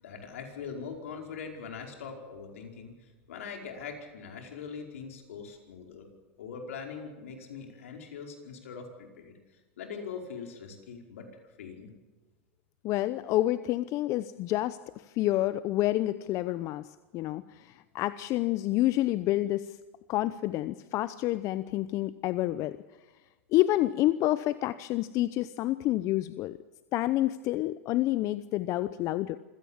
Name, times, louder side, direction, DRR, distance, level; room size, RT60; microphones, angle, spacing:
voice 1, 0.0-2.9 3.3-6.1 6.4-9.4 9.8-11.3 11.6-11.9, left 6 dB, 75° left, 2 dB, 5.0 m, -42 dB
voice 2, 12.8-14.8 15.1-16.9 17.1-19.7 20.1-22.8 23.5-26.6 26.9-29.4, left 15 dB, 45° left, 14 dB, 0.8 m, -28 dB
26.0 x 16.5 x 7.4 m, 1.3 s
hypercardioid pair, 100°, 7 cm